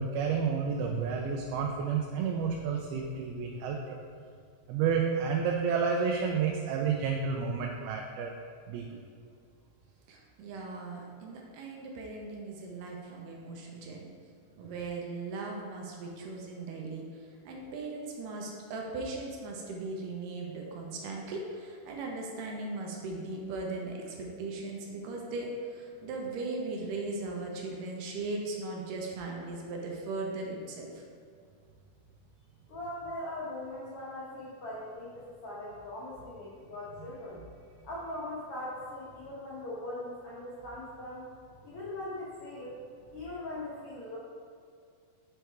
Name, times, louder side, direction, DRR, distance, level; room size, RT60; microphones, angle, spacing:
voice 1, 0.0-4.0 4.7-8.4 8.7-8.9, right 6 dB, 90° right, 1 dB, 2.5 m, -30 dB
voice 2, 10.1-14.1 14.6-31.0, right 3 dB, 75° right, -1 dB, 2.1 m, -38 dB
voice 3, 32.7-41.3 41.6-42.8 43.1-44.2, left 1 dB, 80° left, -7 dB, 1.2 m, -40 dB
6.6 x 4.7 x 4.5 m, 2.3 s
omnidirectional pair, 4.3 m